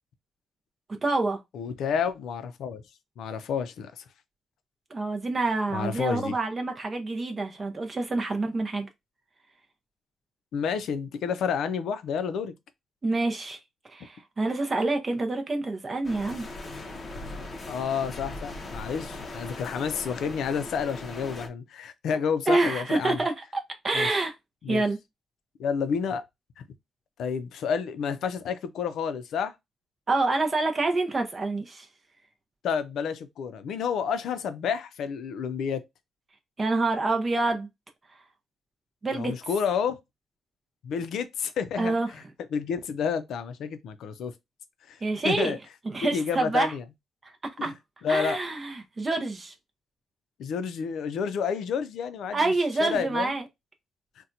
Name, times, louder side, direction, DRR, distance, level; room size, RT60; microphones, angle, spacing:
voice 1, 1.0-1.4 4.9-8.9 13.0-13.6 13.9-16.5 22.5-24.3 24.7-25.0 30.1-31.9 36.6-37.7 39.0-39.4 41.8-42.1 45.0-45.6 45.9-46.7 47.2-47.7 48.1-49.5 52.3-53.4, right 2 dB, 25° right, 0.5 m, -27 dB
voice 2, 1.5-2.8 3.2-4.0 5.7-6.3 10.5-12.5 17.7-23.2 23.9-24.1 24.6-24.8 25.6-26.2 27.2-29.5 32.6-35.8 39.1-40.0 40.8-42.2 42.5-44.3 44.9-45.0 45.2-45.6 46.0-46.8 47.6-47.7 48.0-48.4 50.4-52.5 52.8-53.3, left 6 dB, 80° left, 0.5 m, -30 dB
sound 1, 16.0-21.5, left 2 dB, 30° left, 0.6 m, -39 dB
4.1 x 2.2 x 2.5 m
wide cardioid pair, 170°, 0 cm